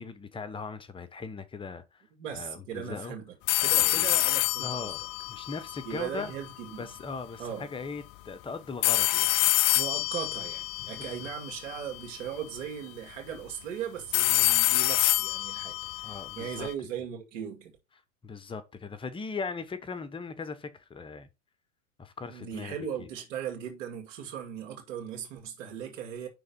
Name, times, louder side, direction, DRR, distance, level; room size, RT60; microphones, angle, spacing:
voice 1, 0.0-2.0 2.3-3.1 3.6-4.1 4.6-6.3 6.7-9.4 10.9-11.1 16.0-16.7 18.2-21.3 22.0-23.1, left 4 dB, 15° left, 0.9 m, -39 dB
voice 2, 2.2-3.3 3.6-4.9 5.9-6.9 7.4-7.7 9.7-17.7 22.2-26.3, right 8 dB, 70° right, 2.2 m, -38 dB
sound 1, 3.5-6.5 8.8-12.0 14.1-16.7, left 20 dB, 45° left, 0.5 m, -27 dB
5.7 x 3.7 x 5.4 m
supercardioid pair, 125°, 39 cm